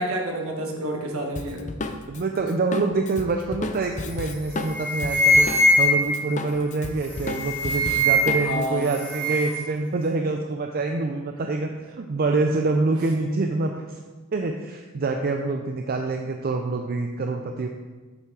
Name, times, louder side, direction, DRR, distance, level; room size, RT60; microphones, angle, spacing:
voice 1, 0.0-1.8 8.4-9.0, equal, 65° right, 1 dB, 1.4 m, -29 dB
Drum kit, 1.4-5.9 6.1-8.7, left 2 dB, 35° left, 0.5 m, -33 dB
voice 2, 2.1-14.0 14.3-17.7, right 3 dB, 45° right, 3 dB, 0.5 m, -26 dB
sound 1, 4.1-4.3 4.6-6.3 7.1-8.6 8.8-9.6, equal, 10° left, 1.5 m, -21 dB
8.2 x 5.7 x 4.8 m, 1.3 s
head